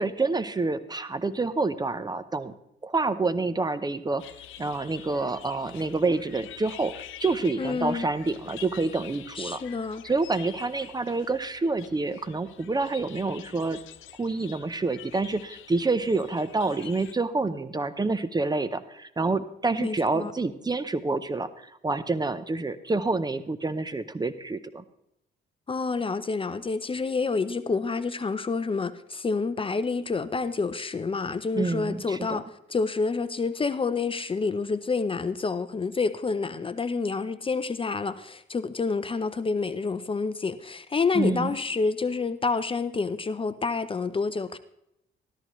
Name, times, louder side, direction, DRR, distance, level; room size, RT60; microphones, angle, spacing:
voice 1, 0.0-2.5 2.8-4.2 4.6-9.6 10.0-13.8 14.2-24.8 31.5-32.4 41.1-41.6, right 3 dB, 20° right, 0.7 m, -28 dB
sound 1, 4.2-17.1, left 12 dB, 85° left, 0.7 m, -47 dB
voice 2, 7.6-8.1 9.4-10.0 19.8-20.3 25.7-44.6, left 4 dB, 25° left, 0.6 m, -28 dB
13.5 x 13.5 x 3.1 m
cardioid pair, 90°, 20 cm